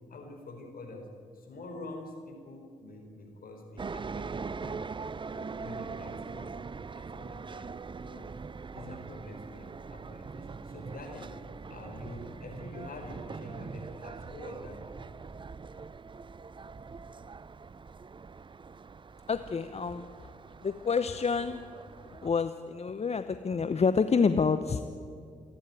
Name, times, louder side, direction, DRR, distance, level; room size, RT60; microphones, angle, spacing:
voice 1, 0.1-1.1 1.3-4.9 5.3-6.6 6.9-7.7 8.1-8.3 8.7-11.3 11.7-14.8, left 2 dB, 60° left, 3 dB, 4.6 m, -46 dB
sound 1, 3.8-22.3, right 5 dB, 30° right, 0.6 m, -42 dB
voice 2, 19.3-20.3 20.6-21.6 22.2-24.8, left 5 dB, 40° left, 11 dB, 0.9 m, -28 dB
28.0 x 10.0 x 9.1 m, 2.4 s
hypercardioid pair, 40°, 17 cm